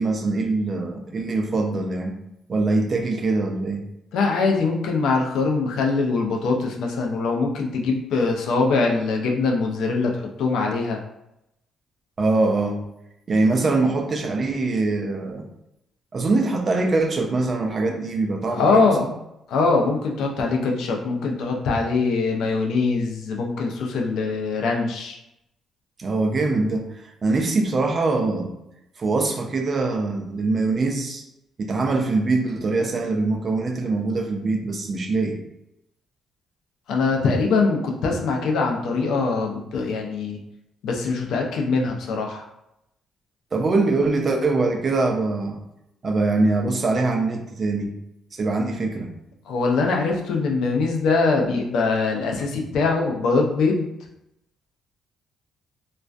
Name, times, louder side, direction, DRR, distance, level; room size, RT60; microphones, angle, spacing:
voice 1, 0.0-2.1 2.5-3.9 12.2-12.8 13.3-15.5 16.1-18.9 26.0-28.5 29.0-31.2 31.6-35.4 43.5-45.6 46.0-48.0 48.3-49.1, right 3 dB, 40° right, 3 dB, 0.4 m, -23 dB
voice 2, 4.1-11.0 18.5-19.1 19.5-25.2 36.9-40.4 40.8-42.4 49.5-53.9, left 4 dB, 80° left, 1 dB, 0.4 m, -22 dB
2.3 x 2.1 x 2.4 m, 0.83 s
cardioid pair, 90°, 0 cm